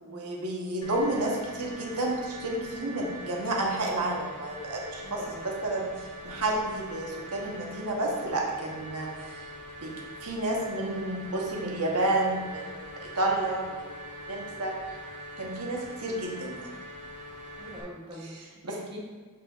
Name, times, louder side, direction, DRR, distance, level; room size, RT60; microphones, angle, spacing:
voice 1, 0.0-9.4 9.8-9.9 10.2-12.7 13.0-13.9 14.3-14.7 15.4-16.7 18.2-18.8, right 2 dB, 85° right, -1 dB, 1.1 m, -31 dB
sound 1, 0.8-17.8, equal, 85° left, 1.3 m, -43 dB
voice 2, 5.0-5.4 17.6-19.0, equal, 25° right, -3 dB, 1.1 m, -44 dB
6.9 x 6.5 x 2.4 m, 1.5 s
head